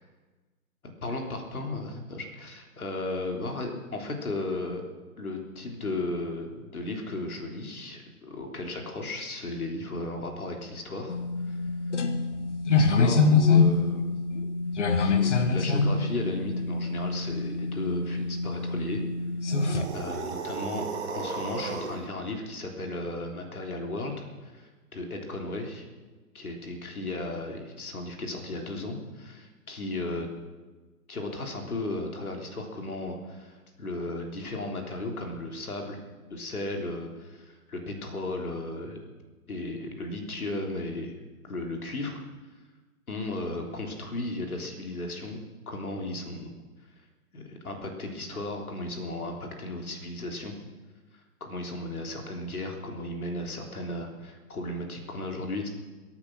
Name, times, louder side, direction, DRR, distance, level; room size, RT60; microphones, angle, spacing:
voice 1, 1.0-4.8 5.2-11.2 11.4-11.6 12.7-14.1 15.0-19.0 19.9-20.9 21.1-25.8 26.3-30.3 31.1-36.0 36.3-39.1 39.5-41.1 41.5-42.2 43.1-45.4 45.7-46.5 47.3-50.5 51.4-55.7, left 2 dB, 65° left, 2 dB, 3.5 m, -35 dB
sound 1, 11.1-19.8, left 4 dB, 50° left, 1.3 m, -25 dB
sound 2, 19.5-22.1, right 4 dB, 45° right, 2.1 m, -35 dB
22.0 x 9.1 x 6.3 m, 1.3 s
figure-of-eight pair, 140°, 46 cm